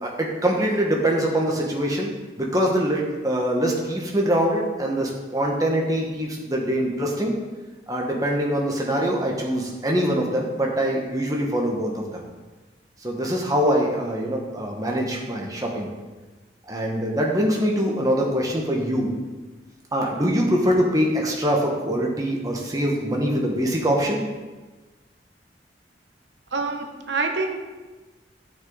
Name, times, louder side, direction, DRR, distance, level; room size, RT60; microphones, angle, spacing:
voice 1, 0.0-2.1 2.4-7.3 7.9-12.2 13.0-15.9 16.7-19.1 19.9-24.2, equal, 20° right, -1 dB, 1.4 m, -23 dB
voice 2, 26.5-27.6, right 3 dB, 80° right, 4 dB, 1.0 m, -26 dB
12.5 x 6.4 x 4.1 m, 1.2 s
head